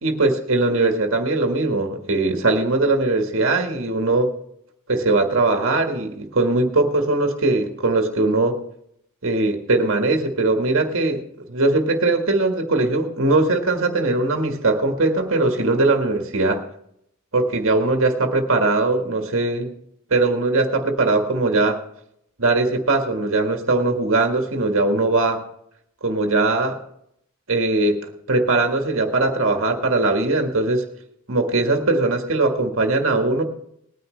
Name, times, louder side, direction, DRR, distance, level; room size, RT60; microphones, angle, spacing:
voice 1, 0.0-4.3 4.9-8.6 9.2-11.2 11.5-16.6 17.3-19.7 20.1-21.8 22.4-25.4 26.0-26.8 27.5-28.0 28.3-30.9 31.3-33.4, right 2 dB, 65° right, 3 dB, 1.7 m, -20 dB
20.0 x 10.0 x 3.3 m, 0.72 s
head